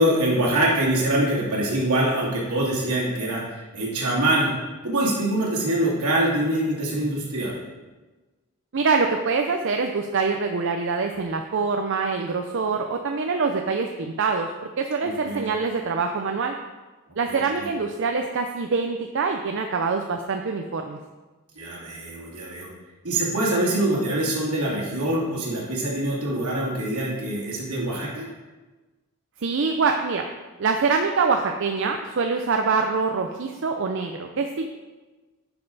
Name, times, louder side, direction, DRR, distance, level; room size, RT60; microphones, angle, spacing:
voice 1, 0.0-4.5 4.8-7.6 15.0-15.5 17.3-17.7 21.6-22.7 23.0-28.3, right 1 dB, 75° right, -5 dB, 2.8 m, -24 dB
voice 2, 8.7-14.5 14.8-16.5 17.2-21.0 29.4-30.3 30.6-34.7, right 4 dB, 55° right, 4 dB, 0.5 m, -24 dB
10.0 x 5.4 x 4.0 m, 1.2 s
head